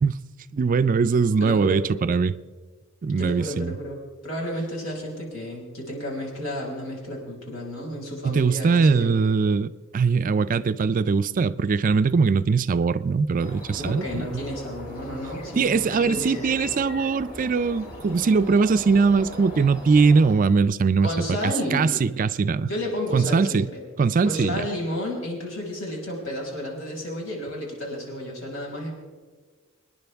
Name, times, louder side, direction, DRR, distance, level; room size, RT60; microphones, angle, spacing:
voice 1, 0.5-2.3 3.0-3.7 8.2-14.4 15.6-21.1 21.4-22.7 23.1-23.7 24.0-24.7, right 4 dB, 40° right, 0.4 m, -21 dB
voice 2, 1.4-1.8 3.2-9.1 10.1-10.3 13.8-16.6 21.0-22.0 22.6-23.8 24.2-28.9, left 1 dB, 70° left, 5.4 m, -32 dB
sound 1, 13.4-20.3, left 1 dB, 40° left, 4.9 m, -39 dB
25.5 x 10.5 x 3.5 m
head